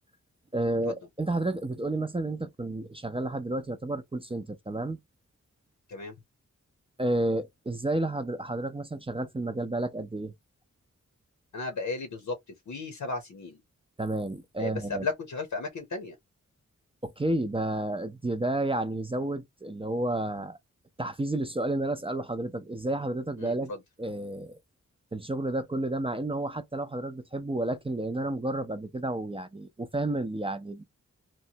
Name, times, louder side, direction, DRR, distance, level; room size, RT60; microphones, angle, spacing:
voice 1, 0.5-5.0 7.0-10.3 14.0-15.1 17.0-20.6 21.0-23.7 24.0-24.6 25.1-30.8, right 2 dB, 20° right, 0.4 m, -31 dB
voice 2, 11.5-13.6 14.6-16.2 23.4-23.5, left 3 dB, 75° left, 0.7 m, -34 dB
3.0 x 2.1 x 2.7 m
wide cardioid pair, 90°, 31 cm